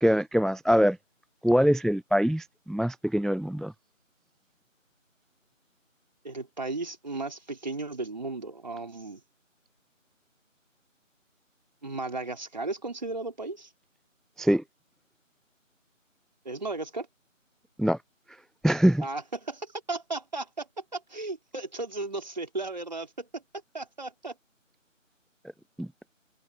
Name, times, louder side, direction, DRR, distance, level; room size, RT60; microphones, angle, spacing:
voice 1, 0.0-1.0 1.4-3.7 14.4-14.6 17.8-18.0 18.6-19.0 25.8-25.9, equal, ahead, 0.4 m, -23 dB
voice 2, 6.2-9.2 11.8-13.7 16.4-17.1 19.0-23.4 23.7-24.4, right 3 dB, 35° right, 4.1 m, -35 dB
figure-of-eight pair, 170°, 40 cm